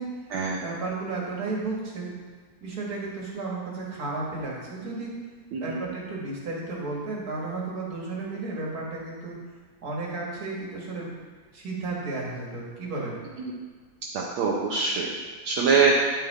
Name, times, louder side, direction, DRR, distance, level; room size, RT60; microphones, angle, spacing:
voice 1, 0.6-2.2 2.6-5.1 5.6-9.4 9.8-11.1 11.5-13.2, right 3 dB, 45° right, -3 dB, 2.2 m, -33 dB
voice 2, 14.1-15.1 15.4-15.9, right 5 dB, 70° right, -3 dB, 1.6 m, -23 dB
10.5 x 5.9 x 4.3 m, 1.5 s
omnidirectional pair, 2.4 m